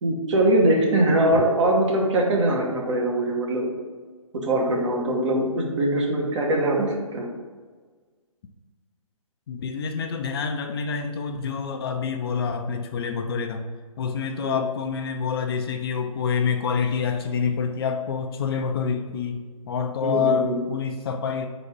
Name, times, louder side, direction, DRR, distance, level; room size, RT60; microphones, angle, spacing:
voice 1, 0.0-3.6 4.4-7.3 14.4-14.6 20.0-20.6, right 1 dB, 55° right, -2 dB, 1.7 m, -22 dB
voice 2, 9.5-13.7 14.0-21.5, left 6 dB, 40° left, 5 dB, 0.6 m, -27 dB
4.8 x 4.0 x 5.5 m, 1.5 s
figure-of-eight pair, 140°, 18 cm